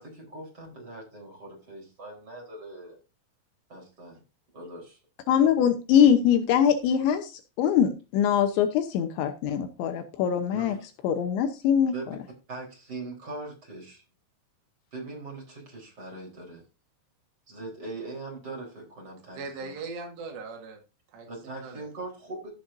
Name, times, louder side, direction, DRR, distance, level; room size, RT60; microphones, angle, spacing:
voice 1, 0.0-3.0 3.7-4.2 4.5-5.0 10.5-10.8 11.9-12.1 12.5-14.0 14.9-16.6 17.5-19.7 21.3-22.5, right 2 dB, 20° right, 0 dB, 3.9 m, -41 dB
voice 2, 5.3-10.8 11.0-12.2, left 8 dB, 75° left, 8 dB, 3.0 m, -23 dB
voice 3, 19.4-20.8 21.1-21.8, right 4 dB, 65° right, 3 dB, 3.7 m, -39 dB
15.5 x 7.6 x 2.6 m, 0.31 s
omnidirectional pair, 5.6 m